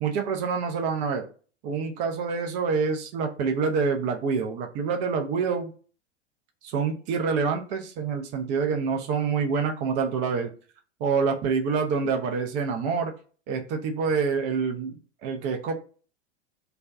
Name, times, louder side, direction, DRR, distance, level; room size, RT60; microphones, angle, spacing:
voice 1, 0.0-1.3 1.6-5.7 6.6-10.5 11.0-13.1 13.5-15.7, right 5 dB, 20° right, 4 dB, 0.3 m, -26 dB
2.4 x 2.1 x 3.3 m, 0.39 s
figure-of-eight pair, 90°, 36 cm